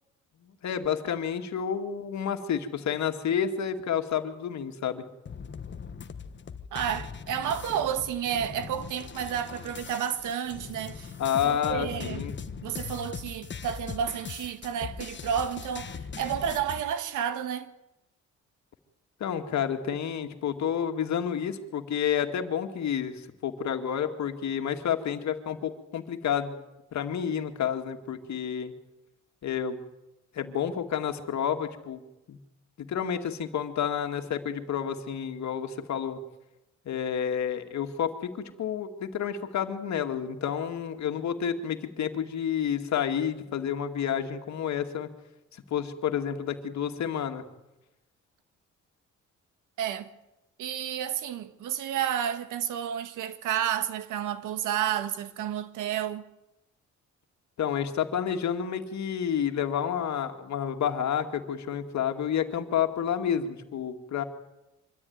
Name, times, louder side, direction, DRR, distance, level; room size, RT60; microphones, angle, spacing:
voice 1, 0.4-5.0 11.2-12.4 19.2-26.6 26.9-28.7 29.4-29.8 30.3-32.0 32.3-32.4 32.8-36.2 36.9-45.1 45.5-47.4 57.6-64.2, left 8 dB, 65° left, 2.3 m, -30 dB
sound 1, 5.3-16.8, left 6 dB, 40° left, 1.3 m, -40 dB
voice 2, 6.7-11.1 11.4-12.2 12.6-15.9 16.2-17.7 49.8-50.1 50.6-56.2, right 9 dB, 85° right, 1.6 m, -31 dB
24.5 x 13.5 x 9.6 m
cardioid pair, 90°, 30 cm